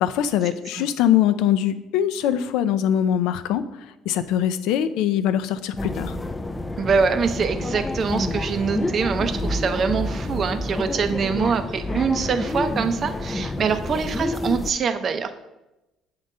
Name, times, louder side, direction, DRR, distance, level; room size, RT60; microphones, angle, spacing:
voice 1, 0.0-3.7 4.1-6.2, left 10 dB, 80° left, 11 dB, 0.5 m, -22 dB
sound 1, 5.8-14.7, left 2 dB, 10° left, 0.4 m, -28 dB
voice 2, 6.8-15.3, right 5 dB, 40° right, 9 dB, 0.6 m, -24 dB
7.9 x 3.8 x 5.4 m, 0.98 s
cardioid pair, 125°, 0 cm